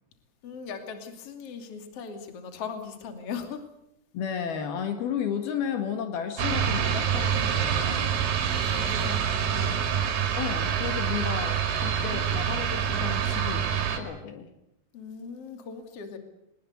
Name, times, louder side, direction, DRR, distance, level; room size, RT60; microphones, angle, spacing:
voice 1, 0.4-3.7 8.5-9.2 9.4-10.1 14.9-16.2, left 6 dB, 40° left, 6 dB, 3.2 m, -39 dB
voice 2, 4.1-8.2 9.0-9.3 9.5-9.8 10.4-14.5, left 8 dB, 70° left, 7 dB, 3.6 m, -33 dB
sound 1, 6.4-14.0, right 8 dB, 75° right, 4.4 m, -26 dB
23.0 x 20.5 x 8.1 m, 0.80 s
omnidirectional pair, 4.7 m